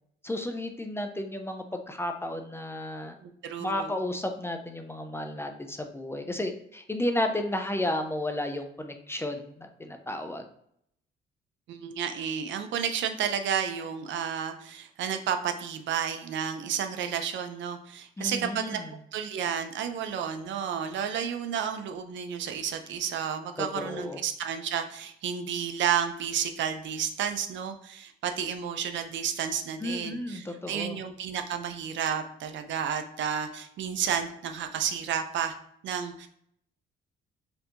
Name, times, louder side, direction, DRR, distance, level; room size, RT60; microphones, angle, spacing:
voice 1, 0.2-3.2 3.6-10.5 18.2-18.9 23.6-24.2 29.8-31.0, left 1 dB, 10° left, 6 dB, 0.4 m, -33 dB
voice 2, 3.2-3.9 11.7-18.8 19.1-35.5 35.8-36.3, right 8 dB, 70° right, 7 dB, 0.5 m, -31 dB
4.3 x 2.8 x 2.5 m, 0.70 s
cardioid pair, 90°, 20 cm